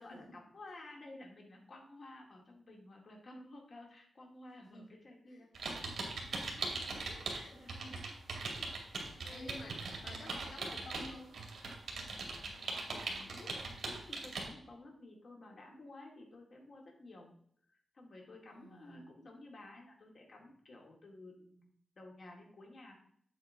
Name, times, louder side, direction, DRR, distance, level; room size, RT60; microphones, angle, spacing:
voice 1, 0.0-7.0 7.5-8.0 8.5-9.8 10.1-10.7 11.9-17.3 17.9-21.7 22.0-23.0, left 2 dB, 45° left, 0 dB, 2.1 m, -54 dB
sound 1, 5.5-7.4 7.7-14.5, right 3 dB, 70° right, 2.3 m, -40 dB
voice 2, 6.7-8.0 8.3-11.4 18.5-19.0, left 1 dB, 80° left, -1 dB, 2.7 m, -52 dB
8.3 x 8.1 x 3.5 m, 0.64 s
wide cardioid pair, 170°, 0 cm